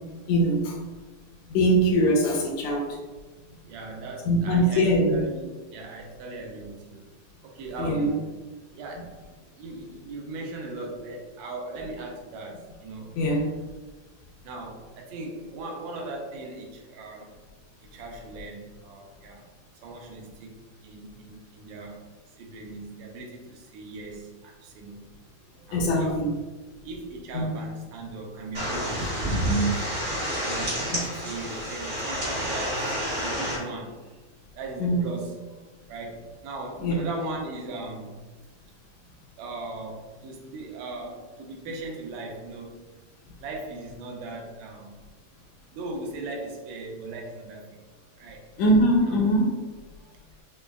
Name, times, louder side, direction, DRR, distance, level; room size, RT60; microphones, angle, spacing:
voice 1, 0.3-0.8 1.5-3.0 4.3-5.2 7.8-8.1 13.2-13.4 25.7-26.3 27.3-27.5 30.9-31.0 34.8-35.1 36.8-37.1 48.6-49.6, equal, 75° left, -1 dB, 1.8 m, -22 dB
voice 2, 3.7-7.1 7.4-8.3 8.7-9.2 9.6-13.4 14.4-17.4 17.8-19.5 19.8-22.0 22.4-25.1 25.5-26.2 26.8-30.0 30.4-34.2 34.5-38.2 39.4-42.9 43.4-45.0 45.7-47.8 48.2-48.4 49.1-49.2 50.0-50.2, right 2 dB, 80° right, 0 dB, 1.8 m, -39 dB
sound 1, 28.5-33.6, right 1 dB, 40° right, 0.8 m, -28 dB
5.1 x 2.1 x 2.3 m, 1.3 s
omnidirectional pair, 3.3 m